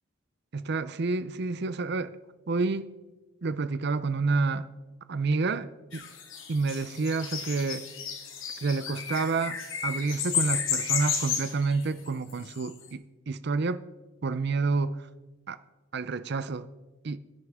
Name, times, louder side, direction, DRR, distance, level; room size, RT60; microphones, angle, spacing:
voice 1, 0.5-2.2 2.5-2.9 3.4-4.7 5.1-6.1 6.5-7.9 8.6-13.8 14.2-15.1 15.5-15.6 15.9-16.7 17.0-17.2, right 3 dB, 55° right, 0.5 m, -29 dB
sound 1, 5.9-12.7, left 7 dB, 75° left, 1.8 m, -32 dB
23.0 x 9.6 x 3.6 m
head